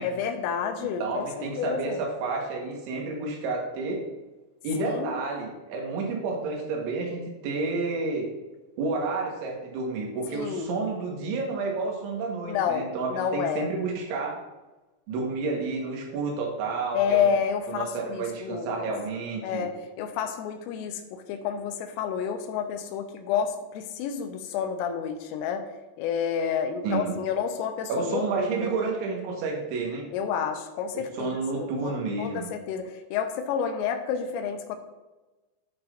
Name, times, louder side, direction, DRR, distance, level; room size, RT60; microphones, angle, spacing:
voice 1, 0.0-1.3 1.6-2.0 4.8-5.2 10.3-10.7 12.4-13.7 16.9-18.9 19.4-25.7 26.0-28.7 30.1-34.8, left 7 dB, 85° left, 5 dB, 3.4 m, -30 dB
voice 2, 0.8-4.1 4.6-8.3 8.8-14.4 15.1-17.3 17.7-19.7 26.8-27.2 27.9-30.1 30.9-32.5, right 3 dB, 75° right, 0 dB, 3.7 m, -30 dB
14.0 x 5.7 x 2.6 m, 1.1 s
omnidirectional pair, 5.7 m